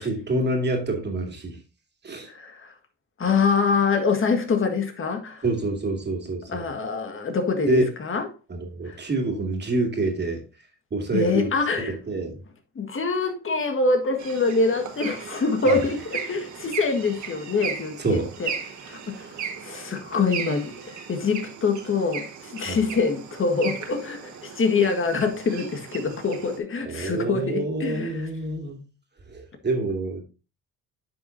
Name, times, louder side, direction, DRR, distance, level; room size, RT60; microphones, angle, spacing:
voice 1, 0.0-1.6 2.0-2.3 5.4-6.7 7.7-7.8 8.5-10.4 10.9-11.5 11.8-12.4 15.6-15.8 18.0-18.3 19.0-19.1 22.6-22.8 26.8-28.8 29.3-30.2, right 2 dB, 35° right, 2.4 m, -27 dB
voice 2, 2.3-2.7 3.2-5.4 6.5-8.3 8.8-9.0 11.1-12.0 12.7-18.5 18.8-28.3, left 4 dB, 45° left, 1.7 m, -25 dB
sound 1, 14.2-26.6, right 7 dB, 70° right, 1.7 m, -37 dB
9.5 x 6.2 x 2.7 m
cardioid pair, 90°, 30 cm